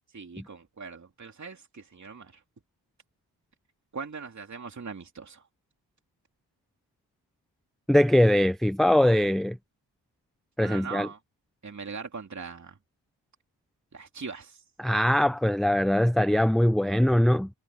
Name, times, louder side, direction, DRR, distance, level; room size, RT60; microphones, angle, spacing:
voice 1, 0.1-2.4 3.9-5.4 10.6-11.2 11.6-12.8 13.9-14.6, right 5 dB, 40° right, 2.9 m, -40 dB
voice 2, 7.9-9.6 10.6-11.1 14.8-17.5, left 1 dB, ahead, 0.6 m, -22 dB
cardioid pair, 65°, 44 cm